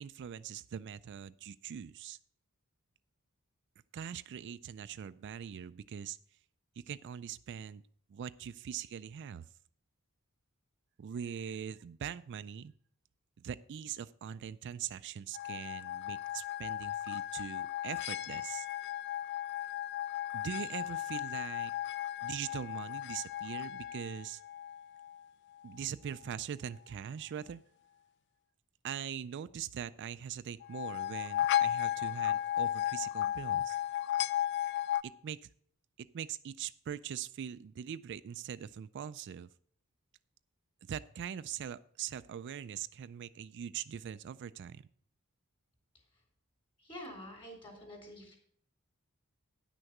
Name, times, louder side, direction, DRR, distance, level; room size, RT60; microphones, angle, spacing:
voice 1, 0.0-2.2 3.9-6.2 6.9-7.8 8.1-9.4 11.0-12.7 13.4-18.7 20.3-21.7 22.2-24.4 25.6-27.6 28.8-33.8 35.0-35.4 36.0-39.5 40.8-44.9, right 8 dB, 55° right, 14 dB, 0.3 m, -42 dB
sound 1, 15.3-25.2 30.6-35.0, left 12 dB, 50° left, 0.3 m, -35 dB
voice 2, 46.8-48.4, equal, 25° left, 2 dB, 3.4 m, -47 dB
10.0 x 6.4 x 5.9 m, 0.62 s
head